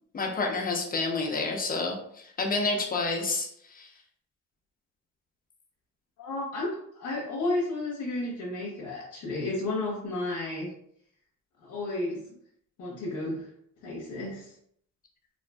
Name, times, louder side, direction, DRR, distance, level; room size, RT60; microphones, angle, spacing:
voice 1, 0.1-3.9, left 3 dB, 30° left, 2 dB, 0.6 m, -29 dB
voice 2, 6.2-10.7 11.6-12.3 12.8-13.5 13.8-14.5, left 2 dB, 80° left, -4 dB, 0.7 m, -32 dB
2.5 x 2.4 x 2.2 m, 0.68 s
cardioid pair, 90°, 30 cm